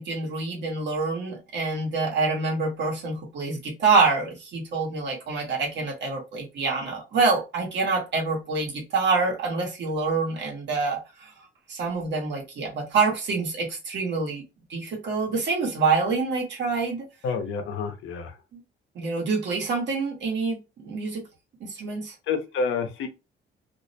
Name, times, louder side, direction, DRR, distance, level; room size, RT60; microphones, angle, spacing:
voice 1, 0.0-11.3 11.7-14.4 14.7-17.0 18.5-18.6 18.9-21.2 21.6-22.1, right 4 dB, 65° right, 1.0 m, -26 dB
voice 2, 17.2-18.4 22.3-23.1, left 5 dB, 80° left, 0.6 m, -28 dB
2.5 x 2.0 x 2.7 m
cardioid pair, 90°, 20 cm